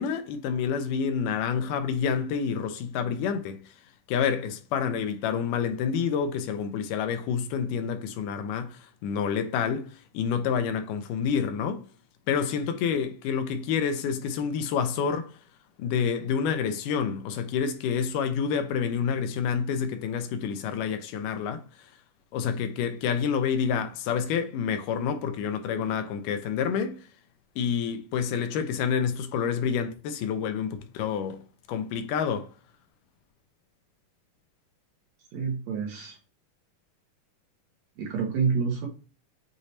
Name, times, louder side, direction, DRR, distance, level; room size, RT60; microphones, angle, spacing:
voice 1, 0.0-3.6 4.1-11.8 12.3-15.3 15.8-21.9 22.3-27.0 27.6-31.4 31.7-32.5, left 7 dB, 80° left, 2.1 m, -28 dB
voice 2, 35.3-36.2 38.0-38.9, right 5 dB, 70° right, 1.9 m, -28 dB
6.5 x 3.0 x 2.7 m
omnidirectional pair, 3.8 m